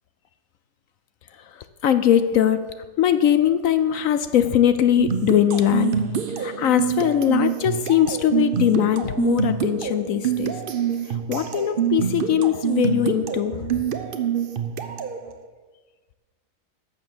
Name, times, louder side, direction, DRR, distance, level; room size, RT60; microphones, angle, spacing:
voice 1, 1.8-2.6 3.0-5.9 6.4-10.5 11.3-13.7, left 10 dB, 65° left, 11 dB, 0.9 m, -20 dB
sound 1, 5.0-15.2, right 8 dB, 45° right, 0.7 m, -26 dB
12.0 x 7.1 x 7.0 m, 1.4 s
omnidirectional pair, 1.8 m